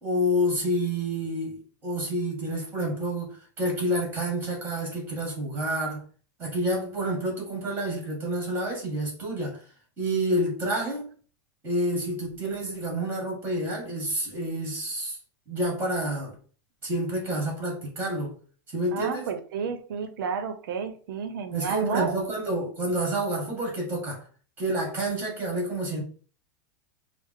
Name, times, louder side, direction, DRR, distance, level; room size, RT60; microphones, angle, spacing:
voice 1, 0.0-6.0 6.4-9.6 10.0-11.1 11.6-15.2 15.5-16.3 16.8-18.3 18.7-19.3 21.5-24.2 24.6-26.0, right 1 dB, 20° right, 1.9 m, -28 dB
voice 2, 18.9-22.2, right 6 dB, 90° right, 0.6 m, -31 dB
4.6 x 2.0 x 3.6 m
supercardioid pair, 160°, 11 cm